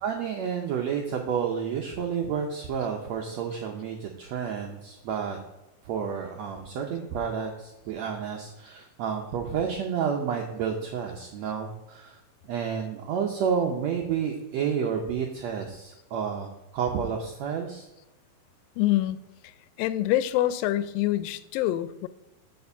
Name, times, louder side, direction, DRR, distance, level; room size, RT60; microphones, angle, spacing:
voice 1, 0.0-5.4 5.8-12.2 12.5-17.9, right 7 dB, 80° right, 2 dB, 1.5 m, -30 dB
voice 2, 18.8-19.5 19.8-22.1, left 14 dB, 85° left, 14 dB, 2.3 m, -26 dB
6.7 x 5.1 x 6.9 m, 1.0 s
omnidirectional pair, 4.0 m